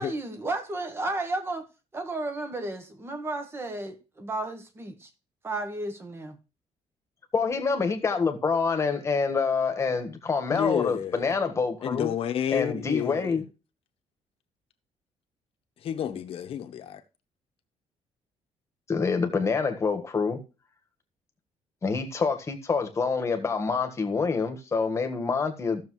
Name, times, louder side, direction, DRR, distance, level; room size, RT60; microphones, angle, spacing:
voice 1, 0.0-1.7 1.9-5.1 5.4-6.4, right 2 dB, 20° right, 1.3 m, -33 dB
voice 2, 7.3-12.1 12.5-13.4 18.9-20.4 21.8-25.8, left 5 dB, 25° left, 1.5 m, -26 dB
voice 3, 10.5-11.3 11.8-13.4 15.8-17.0, left 9 dB, 55° left, 1.2 m, -30 dB
14.5 x 6.7 x 3.2 m
cardioid pair, 150°, 11 cm